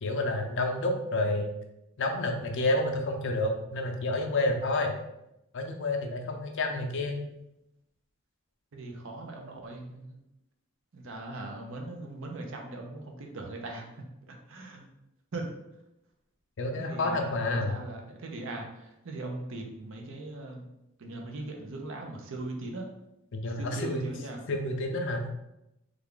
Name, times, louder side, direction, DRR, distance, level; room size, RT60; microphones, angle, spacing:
voice 1, 0.0-1.5 2.0-5.0 5.5-7.2 16.6-17.8 23.3-24.0 24.5-25.3, left 2 dB, 60° left, 4 dB, 0.5 m, -29 dB
voice 2, 8.7-10.2 10.9-14.9 15.3-15.5 16.8-20.7 21.0-22.8 23.5-24.4, right 2 dB, 60° right, 2 dB, 0.6 m, -40 dB
3.3 x 2.3 x 3.7 m, 0.88 s
head